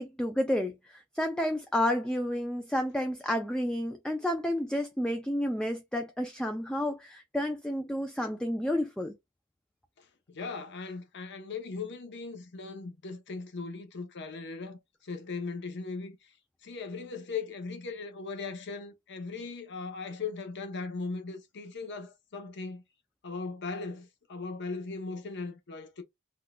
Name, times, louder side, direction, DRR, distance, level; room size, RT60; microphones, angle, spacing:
voice 1, 0.0-9.1, left 1 dB, 5° left, 0.3 m, -30 dB
voice 2, 10.0-16.3 16.6-22.8 23.2-26.0, left 4 dB, 50° left, 0.7 m, -38 dB
3.7 x 2.4 x 2.2 m
head